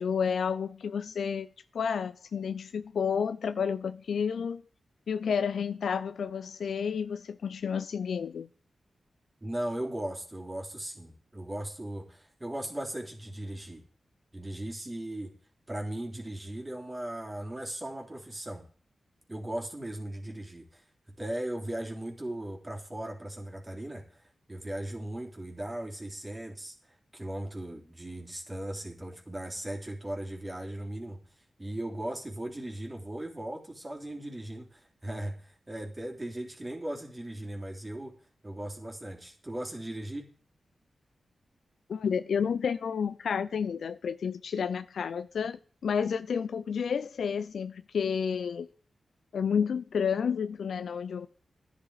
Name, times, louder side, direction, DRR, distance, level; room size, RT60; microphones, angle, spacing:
voice 1, 0.0-1.5 1.7-4.6 5.1-8.5 41.9-48.7 49.3-51.3, left 6 dB, 80° left, 0.4 m, -30 dB
voice 2, 9.4-13.8 14.3-15.3 15.7-18.7 19.3-20.8 21.2-31.2 31.6-38.1 38.4-40.3, right 1 dB, 25° right, 3.4 m, -38 dB
11.5 x 10.0 x 4.8 m
cardioid pair, 50°, 0 cm